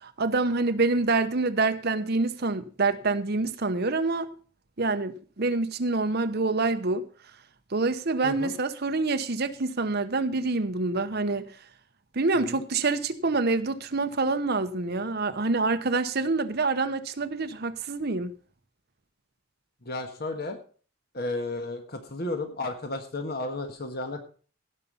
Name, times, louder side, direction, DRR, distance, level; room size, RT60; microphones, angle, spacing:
voice 1, 0.0-4.3 4.8-7.0 7.7-11.5 12.1-18.3, right 3 dB, 55° right, 0.9 m, -26 dB
voice 2, 8.2-8.5 12.5-12.6 19.8-20.6 21.1-24.2, left 2 dB, 50° left, 1.5 m, -33 dB
16.5 x 5.6 x 5.4 m
head